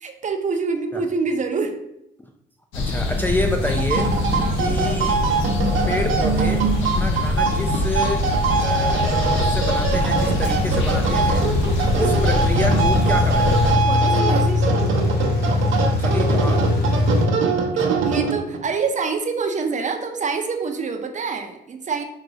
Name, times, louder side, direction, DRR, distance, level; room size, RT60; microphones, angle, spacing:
voice 1, 0.0-1.8 4.3-4.7 13.9-14.7 16.9-17.1 18.0-22.0, right 4 dB, 40° right, 5 dB, 0.6 m, -26 dB
sound 1, 2.7-13.8, left 2 dB, 75° left, 0.8 m, -24 dB
voice 2, 2.8-4.1 4.6-5.2 5.9-8.3 8.6-11.5 12.0-13.9 16.0-16.7, left 1 dB, 10° left, 2 dB, 0.3 m, -28 dB
sound 2, 3.7-18.6, right 4 dB, 75° right, 0.7 m, -23 dB
sound 3, 5.3-17.2, left 2 dB, 50° left, 1.3 m, -24 dB
3.9 x 2.3 x 3.9 m, 0.81 s
cardioid pair, 90°, 20 cm